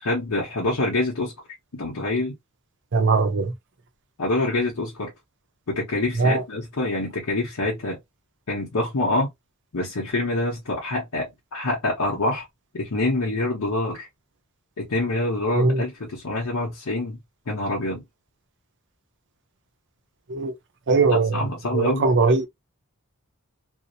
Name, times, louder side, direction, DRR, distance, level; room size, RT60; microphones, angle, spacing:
voice 1, 0.0-1.3 1.7-2.3 4.2-5.1 5.7-8.0 8.5-9.3 9.7-12.4 12.7-14.1 14.8-17.2 17.5-18.0 21.1-22.0, left 2 dB, 80° left, 0.8 m, -26 dB
voice 2, 2.9-3.5 6.2-6.4 15.6-15.8 20.3-20.5 20.9-21.5 21.7-22.5, right 3 dB, 55° right, 0.5 m, -20 dB
2.6 x 2.0 x 2.6 m
head